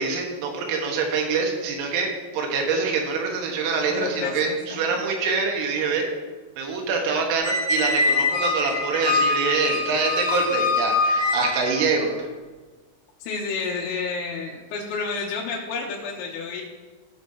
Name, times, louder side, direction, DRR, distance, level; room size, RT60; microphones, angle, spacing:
voice 1, 0.0-2.1 2.3-6.1 6.6-12.3, right 4 dB, 85° right, 1 dB, 4.0 m, -25 dB
voice 2, 3.9-4.9 13.2-16.6, left 4 dB, 90° left, -4 dB, 3.7 m, -30 dB
Squeak, 7.4-11.9, left 3 dB, 35° left, 3.7 m, -24 dB
16.0 x 6.4 x 2.8 m, 1.3 s
omnidirectional pair, 6.0 m